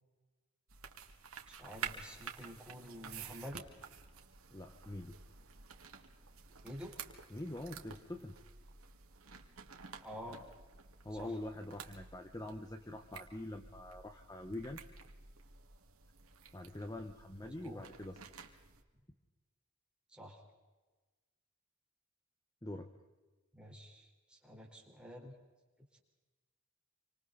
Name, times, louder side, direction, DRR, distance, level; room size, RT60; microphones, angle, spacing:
sound 1, 0.7-18.8, right 6 dB, 85° right, 2.1 m, -51 dB
voice 1, 1.5-3.6 6.6-6.9 10.0-10.4 11.1-11.4 17.4-17.9 20.1-20.4 23.5-25.4, equal, 5° right, -1 dB, 4.2 m, -49 dB
voice 2, 4.5-5.2 7.3-8.4 11.0-14.8 16.5-18.2 22.6-22.9, left 1 dB, 15° left, 6 dB, 1.1 m, -44 dB
28.0 x 26.0 x 4.1 m, 1.3 s
head